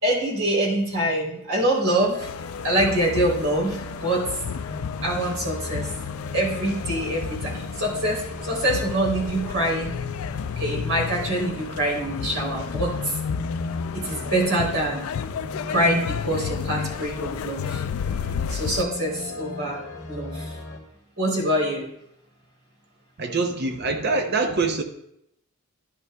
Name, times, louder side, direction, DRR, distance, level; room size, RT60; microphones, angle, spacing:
voice 1, 0.0-2.3 2.6-4.2 5.0-5.9 6.3-10.0 10.6-13.2 13.9-15.1 15.7-17.8 18.5-19.8 20.1-20.6 21.2-21.9, right 1 dB, 70° right, 3.3 m, -25 dB
sound 1, 2.0-20.8, left 2 dB, 50° left, 1.9 m, -38 dB
sound 2, 2.2-18.8, left 6 dB, 85° left, 0.4 m, -32 dB
voice 2, 23.2-24.8, right 3 dB, 50° right, 0.7 m, -24 dB
11.5 x 11.0 x 2.2 m
head